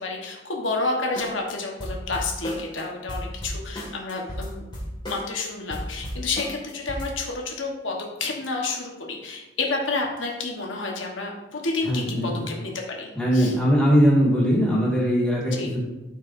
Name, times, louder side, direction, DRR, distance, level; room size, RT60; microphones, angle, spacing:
voice 1, 0.0-4.6 5.1-13.5 15.5-15.7, left 3 dB, 80° left, 0 dB, 1.3 m, -30 dB
sound 1, 1.2-1.5 1.8-2.8 3.1-5.4 5.7-7.1, equal, 25° left, 1.9 m, -34 dB
voice 2, 11.8-12.4 13.2-15.8, equal, 5° left, -6 dB, 2.0 m, -20 dB
13.0 x 4.7 x 2.6 m, 1.1 s
head